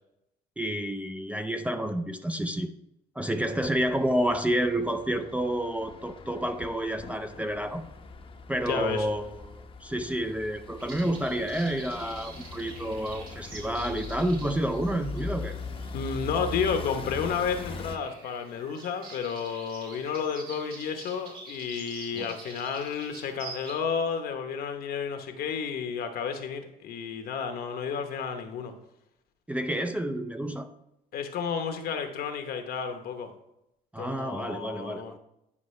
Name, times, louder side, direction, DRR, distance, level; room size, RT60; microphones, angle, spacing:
voice 1, 0.6-2.7 3.2-7.8 8.5-15.6 22.1-22.3 29.5-30.7 33.9-35.2, right 1 dB, 10° right, 8 dB, 0.4 m, -29 dB
sound 1, 3.4-18.0, left 3 dB, 35° left, 0.8 m, -41 dB
voice 2, 8.7-9.1 15.9-28.7 31.1-33.3 34.0-35.1, left 6 dB, 65° left, 6 dB, 1.0 m, -31 dB
sound 2, 10.8-23.7, right 4 dB, 60° right, 2.5 m, -47 dB
9.7 x 5.2 x 3.2 m, 0.84 s
cardioid pair, 110°, 17 cm